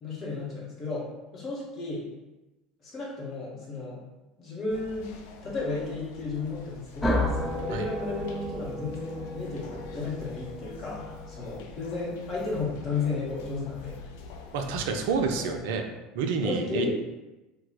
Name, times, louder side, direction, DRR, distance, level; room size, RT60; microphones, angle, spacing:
voice 1, 0.0-2.1 2.8-4.0 4.4-5.1 5.4-14.0 15.3-15.6 16.4-16.9, left 3 dB, 40° left, -6 dB, 1.2 m, -33 dB
sound 1, 4.7-15.6, left 4 dB, 65° left, 0.4 m, -46 dB
sound 2, 7.0-11.7, left 1 dB, 10° left, 0.5 m, -33 dB
voice 2, 14.5-15.9 16.1-16.9, right 5 dB, 65° right, 4 dB, 0.4 m, -28 dB
2.8 x 2.2 x 4.0 m, 1.1 s
figure-of-eight pair, 70°, 0 cm